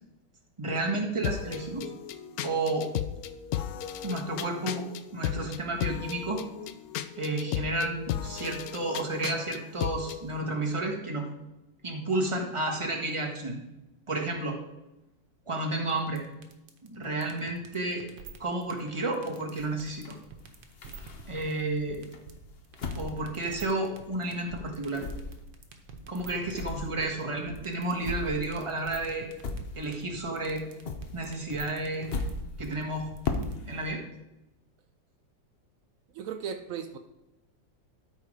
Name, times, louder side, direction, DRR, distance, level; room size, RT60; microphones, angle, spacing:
voice 1, 0.6-1.9 2.4-2.9 4.0-4.9 5.1-6.4 7.1-11.3 11.8-13.6 14.1-14.6 15.5-16.2 16.8-18.0 18.4-20.2 21.3-22.1 23.0-25.1 26.1-29.3 29.7-30.6 31.1-32.1 32.6-33.1 33.7-34.0, right 2 dB, 20° right, 1 dB, 1.2 m, -31 dB
sound 1, 1.2-10.2, left 10 dB, 85° left, 0.7 m, -35 dB
sound 2, 15.9-33.5, right 7 dB, 70° right, 1.7 m, -47 dB
sound 3, 19.5-21.7 22.1-24.2 24.5-30.2 30.5-33.9, left 3 dB, 50° left, 0.7 m, -38 dB
voice 2, 36.1-37.0, right 7 dB, 90° right, 8 dB, 0.7 m, -36 dB
13.0 x 4.4 x 4.9 m, 0.96 s
omnidirectional pair, 2.1 m